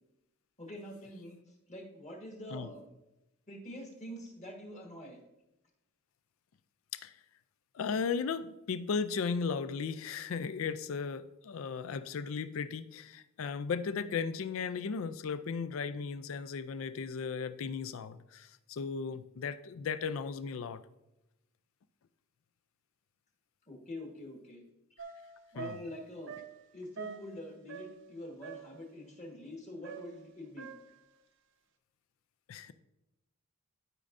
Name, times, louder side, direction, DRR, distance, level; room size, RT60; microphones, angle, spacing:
voice 1, 0.6-2.8 3.5-5.2 23.7-24.6 25.5-26.3 26.7-30.7, left 1 dB, 30° left, 1 dB, 1.4 m, -45 dB
voice 2, 7.7-20.8 25.5-25.8 32.5-32.7, left 5 dB, 65° left, 13 dB, 0.4 m, -36 dB
sound 1, 25.0-28.1 28.4-28.9 29.8-31.1, right 6 dB, 55° right, 0.6 m, -46 dB
12.0 x 5.3 x 2.5 m, 0.92 s
head